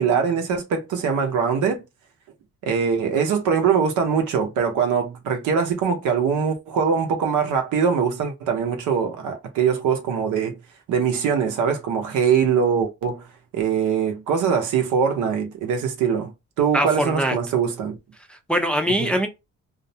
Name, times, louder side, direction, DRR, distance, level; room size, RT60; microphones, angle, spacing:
voice 1, 0.0-1.8 2.6-10.6 10.9-13.2 13.5-16.3 16.6-18.0 18.9-19.1, right 6 dB, 80° right, 0.7 m, -22 dB
voice 2, 16.7-17.4 18.3-19.3, equal, 5° left, 0.5 m, -22 dB
2.4 x 2.1 x 2.7 m
cardioid pair, 90°, 30 cm